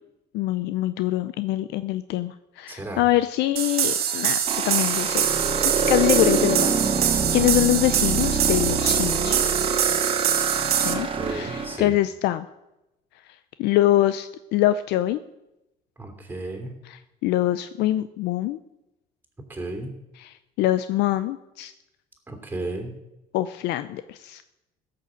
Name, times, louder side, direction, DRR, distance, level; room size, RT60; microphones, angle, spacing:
voice 1, 0.3-5.3 5.9-9.5 10.8-12.5 13.6-15.2 16.9-18.6 20.2-21.7 23.3-24.4, left 15 dB, 75° left, 12 dB, 0.6 m, -24 dB
voice 2, 2.7-3.1 7.3-7.6 11.1-12.0 16.0-16.7 19.5-19.9 22.3-22.9, right 2 dB, 10° right, 4 dB, 3.0 m, -34 dB
sound 1, 3.6-10.9, right 10 dB, 65° right, 1.5 m, -24 dB
sound 2, 4.5-11.8, right 4 dB, 30° right, 1.6 m, -26 dB
15.5 x 6.9 x 7.6 m, 0.94 s
cardioid pair, 110°, 18 cm